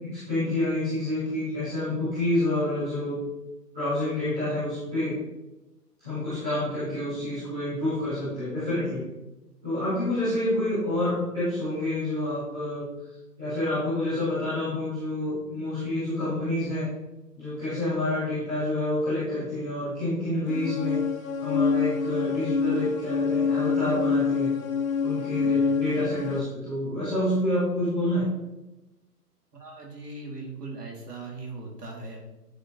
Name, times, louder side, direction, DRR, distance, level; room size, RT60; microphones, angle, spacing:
voice 1, 0.1-3.2 3.7-5.2 6.0-9.0 9.6-12.9 13.4-16.9 17.4-21.0 21.4-24.5 25.0-28.2, left 1 dB, ahead, -19 dB, 0.4 m, -28 dB
sound 1, 20.5-26.4, left 5 dB, 55° left, 1.0 m, -26 dB
voice 2, 29.5-32.2, right 3 dB, 70° right, 0 dB, 2.6 m, -39 dB
9.6 x 5.2 x 3.0 m, 1.0 s
figure-of-eight pair, 135°, 48 cm